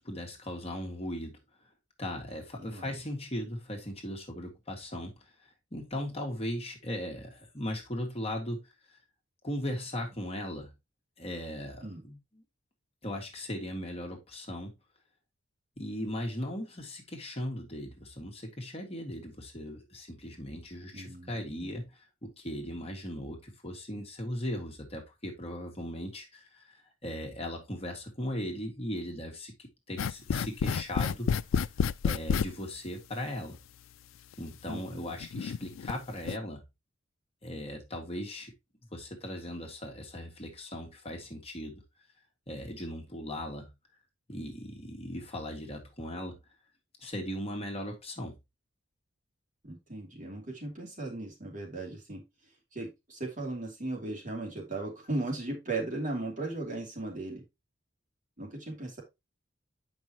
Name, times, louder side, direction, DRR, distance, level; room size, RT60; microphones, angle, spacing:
voice 1, 0.0-1.4 2.0-9.0 9.4-10.7 11.2-12.2 13.0-14.7 15.8-31.3 32.0-33.6 34.4-36.6 37.4-38.5 38.9-41.8 42.5-43.7 44.3-46.4 47.0-48.4, left 1 dB, 30° left, 1.9 m, -38 dB
voice 2, 2.6-2.9 11.8-12.0 20.9-21.7 34.7-35.1 49.6-52.2 52.7-57.4 58.4-59.0, right 2 dB, 40° right, 3.0 m, -37 dB
sound 1, 30.0-32.5 33.5-33.6 34.3-34.4 35.2-35.9 36.2-36.4, left 6 dB, 80° left, 0.4 m, -29 dB
8.6 x 5.6 x 2.9 m
head